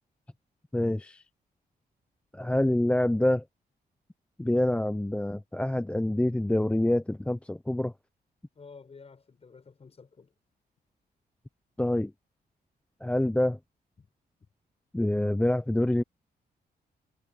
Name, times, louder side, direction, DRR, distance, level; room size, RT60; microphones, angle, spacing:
voice 1, 0.7-1.2 2.3-3.4 4.4-7.9 11.8-12.1 13.0-13.6 14.9-16.0, left 1 dB, 5° left, 0.7 m, -26 dB
voice 2, 8.6-10.3 14.0-14.1, left 4 dB, 40° left, 7.3 m, -51 dB
cardioid pair, 120°, 17 cm